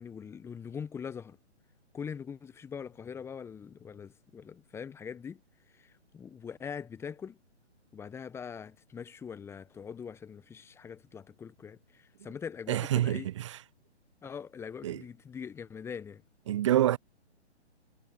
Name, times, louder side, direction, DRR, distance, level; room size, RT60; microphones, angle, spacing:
voice 1, 0.0-1.4 1.9-5.4 5.7-7.4 7.9-13.3 14.2-16.2, left 7 dB, 5° left, 1.4 m, -42 dB
voice 2, 12.7-13.6 14.8-15.0 16.5-17.0, right 12 dB, 25° right, 0.8 m, -27 dB
figure-of-eight pair, 135°, 35 cm